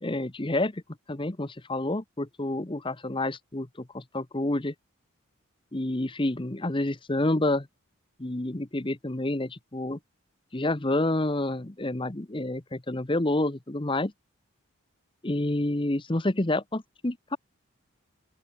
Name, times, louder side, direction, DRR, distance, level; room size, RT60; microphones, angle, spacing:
voice 1, 0.0-0.8 1.1-3.7 3.9-4.7 5.7-7.7 8.2-10.0 10.5-14.1 15.2-17.4, left 1 dB, 25° left, 1.0 m, -28 dB
open air
head